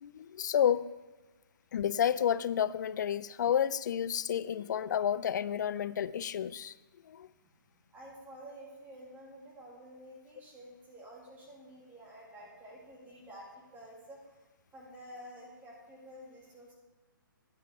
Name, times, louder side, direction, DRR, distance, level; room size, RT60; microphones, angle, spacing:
voice 1, 0.0-0.9 1.7-6.7 7.1-7.3, left 9 dB, 55° left, 0.4 m, -30 dB
voice 2, 7.9-14.4 14.7-16.7, equal, 15° right, 1.9 m, -50 dB
9.8 x 8.4 x 3.5 m
hypercardioid pair, 140°, 12 cm